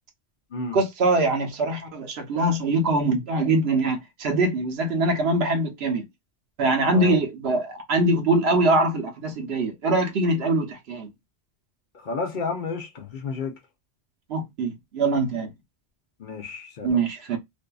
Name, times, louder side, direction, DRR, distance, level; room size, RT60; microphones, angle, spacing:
voice 1, 0.7-6.0 6.6-11.1 14.3-15.5 16.8-17.4, right 2 dB, 70° right, 1.0 m, -23 dB
voice 2, 11.9-13.6 16.2-17.0, left 4 dB, 55° left, 0.6 m, -31 dB
2.6 x 2.4 x 2.2 m
omnidirectional pair, 1.1 m